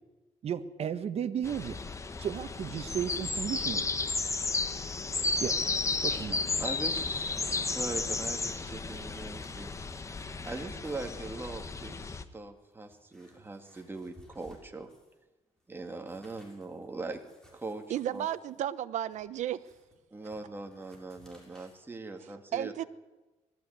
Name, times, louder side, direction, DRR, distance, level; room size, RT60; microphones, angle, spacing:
voice 1, 0.4-1.8 2.2-3.9 5.4-5.6 6.0-6.4, right 8 dB, 55° right, 11 dB, 1.3 m, -34 dB
sound 1, 1.4-12.2, left 3 dB, 25° left, 1.2 m, -33 dB
sound 2, 3.6-5.1 5.5-5.8 6.1-6.2 6.6-7.7 8.2-10.5 10.8-11.2 11.9-12.0 12.5-15.2 15.6-21.8, left 1 dB, 5° left, 6.8 m, -62 dB
voice 2, 6.6-9.7 10.5-14.9 15.7-17.2 17.5-17.8 18.1-18.3 20.1-22.7, right 3 dB, 15° right, 4 dB, 2.3 m, -41 dB
voice 3, 17.9-19.6 22.5-22.9, right 11 dB, 75° right, 15 dB, 0.9 m, -33 dB
20.0 x 14.5 x 9.6 m, 1.1 s
cardioid pair, 115°, 12 cm